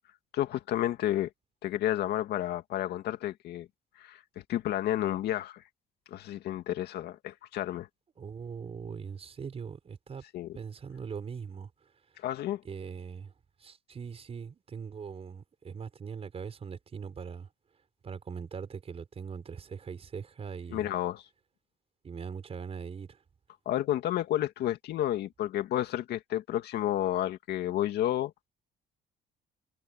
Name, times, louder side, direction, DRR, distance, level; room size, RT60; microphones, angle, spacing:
voice 1, 0.3-1.3 1.6-3.7 4.0-4.2 4.5-5.6 6.1-7.9 10.3-10.6 12.2-12.6 20.7-21.2 23.7-28.3, left 13 dB, 75° left, 2.4 m, -31 dB
voice 2, 8.2-10.2 10.5-12.2 12.6-13.3 13.6-17.5 18.0-20.9 22.0-23.2, right 6 dB, 35° right, 5.3 m, -41 dB
cardioid pair, 110°, 17 cm